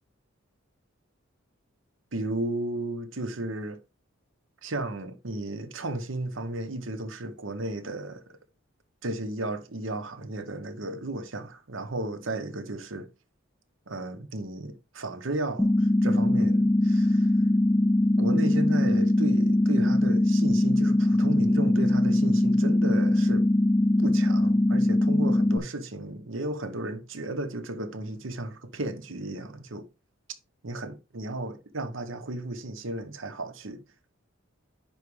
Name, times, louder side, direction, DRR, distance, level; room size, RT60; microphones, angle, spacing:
voice 1, 2.1-3.8 4.6-8.4 9.0-13.1 13.9-17.3 18.2-23.5 24.0-29.9 30.6-33.8, right 2 dB, 70° right, 1.0 m, -34 dB
sound 1, 15.6-25.6, left 1 dB, 5° left, 0.3 m, -22 dB
10.5 x 4.8 x 3.2 m
head